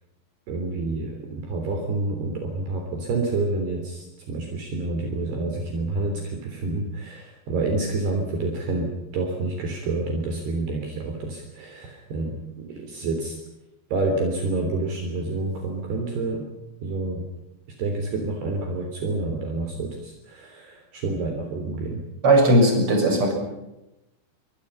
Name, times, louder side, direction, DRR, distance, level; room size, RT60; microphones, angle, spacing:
voice 1, 0.5-13.4 13.9-16.5 16.8-17.3 17.8-22.0, right 3 dB, 60° right, 3 dB, 5.3 m, -28 dB
voice 2, 22.2-23.3, right 1 dB, 25° right, 3 dB, 7.1 m, -17 dB
28.5 x 24.0 x 5.7 m, 0.93 s
omnidirectional pair, 5.6 m